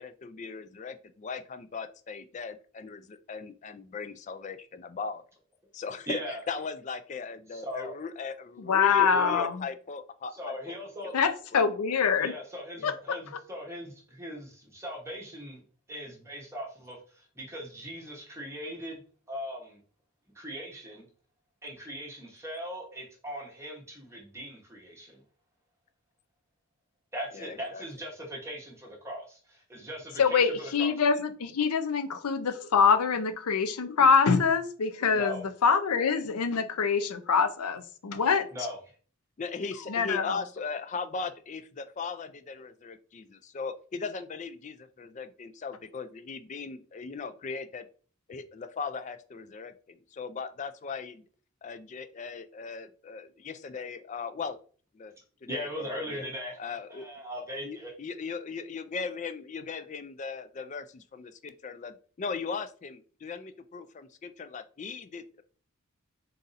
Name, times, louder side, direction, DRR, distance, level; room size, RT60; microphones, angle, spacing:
voice 1, 0.0-5.2 5.7-6.2 6.5-10.8 11.0-11.2 11.5-11.6 12.8-12.9 27.3-27.8 39.4-47.9 48.3-51.2 51.6-54.6 54.9-55.1 55.4-56.3 56.6-57.1 57.6-65.4, left 5 dB, 30° left, 11 dB, 0.3 m, -38 dB
voice 2, 6.1-6.4 7.5-8.0 8.9-9.5 10.3-11.1 12.2-15.6 15.9-19.0 19.3-19.8 20.3-21.1 21.6-25.2 27.1-30.9 35.1-35.4 38.5-38.8 55.5-57.9, equal, 10° right, -1 dB, 0.9 m, -39 dB
voice 3, 8.6-9.7 11.1-12.3 12.8-13.2 30.2-38.5 39.9-40.4, left 6 dB, 85° left, 10 dB, 0.5 m, -25 dB
4.0 x 2.6 x 3.9 m, 0.42 s
head